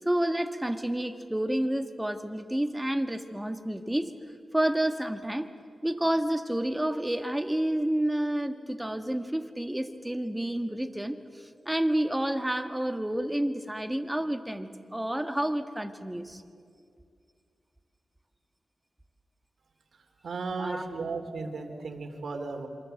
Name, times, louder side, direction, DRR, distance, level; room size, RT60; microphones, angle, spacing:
voice 1, 0.1-4.1 4.5-5.5 5.8-16.4 20.6-20.9, right 1 dB, 10° right, 7 dB, 1.9 m, -29 dB
voice 2, 20.2-22.7, right 4 dB, 75° right, 5 dB, 3.3 m, -35 dB
27.0 x 24.5 x 8.0 m, 2.3 s
cardioid pair, 65°, 0 cm